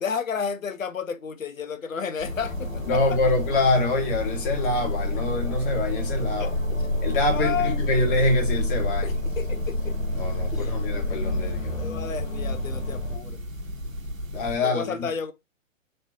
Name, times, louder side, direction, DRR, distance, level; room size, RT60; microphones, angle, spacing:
voice 1, 0.0-3.2 6.4-6.8 7.3-7.7 9.0-10.0 10.5-10.8 11.8-13.4 14.6-15.3, left 6 dB, 85° left, 0.7 m, -32 dB
sound 1, 2.2-13.2, left 2 dB, 65° left, 1.7 m, -35 dB
sound 2, 2.2-14.6, left 1 dB, 80° right, 1.0 m, -29 dB
voice 2, 2.9-6.6 7.0-9.1 10.1-11.8 14.3-15.1, left 2 dB, 40° left, 1.7 m, -25 dB
4.3 x 3.3 x 2.6 m
figure-of-eight pair, 115°, 39 cm